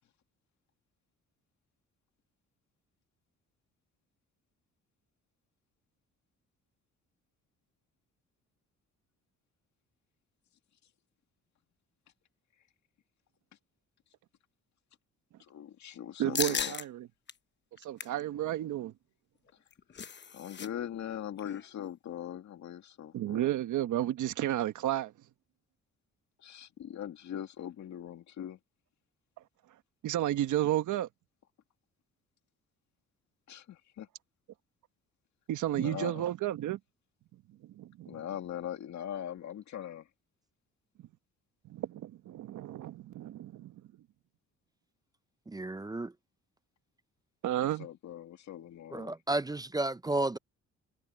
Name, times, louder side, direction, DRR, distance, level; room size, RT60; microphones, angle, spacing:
voice 1, 15.4-16.7 19.9-23.5 26.4-28.6 33.5-34.1 35.7-36.2 38.1-40.1 47.8-49.1, left 10 dB, 65° left, 2.3 m, -41 dB
voice 2, 16.2-17.1 17.8-18.9 23.1-25.1 30.0-31.1 35.5-36.8 37.6-38.2 41.7-43.7 47.4-47.9, right 13 dB, 75° right, 1.4 m, -32 dB
sound 1, 16.3-16.8 17.3-17.4 17.8-18.2 19.5-20.7 20.9-21.1 21.4-21.7, left 7 dB, 35° left, 1.0 m, -36 dB
voice 3, 45.5-46.1 48.9-50.4, right 2 dB, 15° right, 0.5 m, -32 dB
cardioid pair, 90°, 30 cm